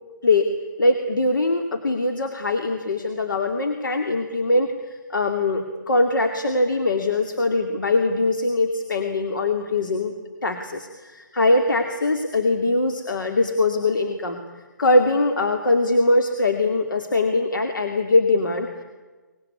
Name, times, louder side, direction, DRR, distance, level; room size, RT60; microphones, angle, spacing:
voice 1, 0.8-10.1 10.4-14.4 14.8-18.8, left 2 dB, 85° left, 5 dB, 2.7 m, -22 dB
24.0 x 20.5 x 9.7 m, 1.3 s
hypercardioid pair, 165°, 10 cm